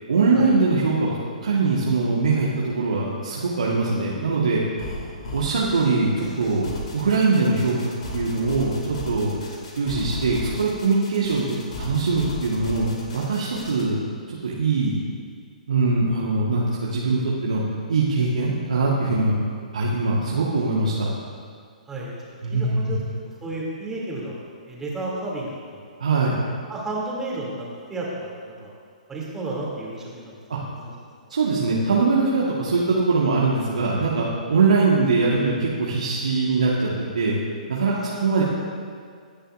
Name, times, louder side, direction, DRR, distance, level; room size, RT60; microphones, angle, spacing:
voice 1, 0.1-4.6 5.3-6.7 6.9-7.8 8.1-9.4 9.7-14.0 14.3-14.9 15.7-17.6 17.9-19.4 19.7-21.1 22.4-22.9 26.0-26.3 30.5-30.6 31.3-36.9 37.1-37.4 37.7-38.4, right 3 dB, 60° right, -5 dB, 1.7 m, -22 dB
sound 1, 4.8-13.8, left 1 dB, 50° left, 2.8 m, -35 dB
voice 2, 22.5-23.0 23.4-24.4 24.7-25.9 26.7-28.7 29.1-30.4 30.7-30.9 31.2-31.3 37.8-38.4, right 2 dB, 10° right, -5 dB, 3.0 m, -32 dB
23.0 x 9.9 x 2.7 m, 2.1 s
figure-of-eight pair, 120°, 4 cm